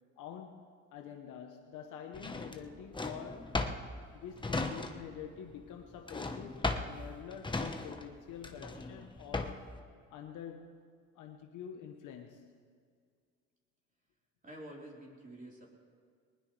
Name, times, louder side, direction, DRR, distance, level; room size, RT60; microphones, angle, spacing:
voice 1, 0.2-3.5 4.1-9.6 10.1-10.8 11.1-12.5, left 8 dB, 90° left, 3 dB, 1.1 m, -47 dB
Drawer open or close, 2.1-5.3 5.5-9.8, left 2 dB, 15° left, 1.1 m, -37 dB
voice 2, 14.4-15.7, right 1 dB, 25° right, -4 dB, 4.1 m, -48 dB
20.5 x 20.0 x 3.3 m, 2.1 s
cardioid pair, 90°, 30 cm